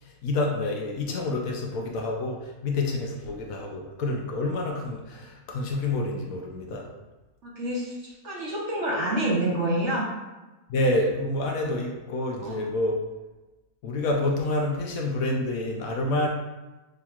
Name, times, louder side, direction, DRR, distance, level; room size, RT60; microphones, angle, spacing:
voice 1, 0.0-6.9 10.7-13.0 13.8-16.3, left 2 dB, 70° left, 0 dB, 1.0 m, -28 dB
voice 2, 7.4-10.1 12.4-12.6, right 1 dB, 55° right, -4 dB, 1.1 m, -27 dB
6.1 x 2.9 x 2.3 m, 1.1 s
omnidirectional pair, 1.6 m